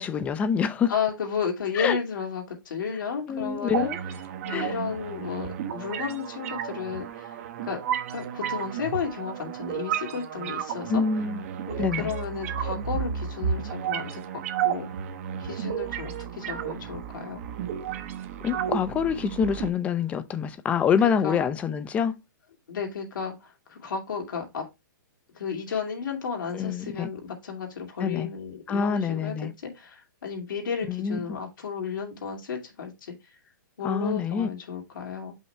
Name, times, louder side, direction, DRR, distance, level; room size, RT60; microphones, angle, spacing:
voice 1, 0.0-0.9 1.7-2.0 3.3-4.0 4.5-4.7 10.9-11.4 11.8-12.1 18.4-22.2 26.5-27.1 28.0-28.3 28.7-29.5 30.9-31.2 33.8-34.5, left 7 dB, 15° left, 0.4 m, -26 dB
voice 2, 0.9-3.9 4.4-7.3 7.6-7.8 8.1-11.0 11.7-14.9 15.4-17.4 21.2-21.4 22.7-24.6 25.3-33.1 33.8-35.4, left 6 dB, 80° left, 2.3 m, -33 dB
sound 1, 3.7-19.7, right 9 dB, 45° right, 0.7 m, -32 dB
5.5 x 3.2 x 5.6 m
hypercardioid pair, 155°, 11 cm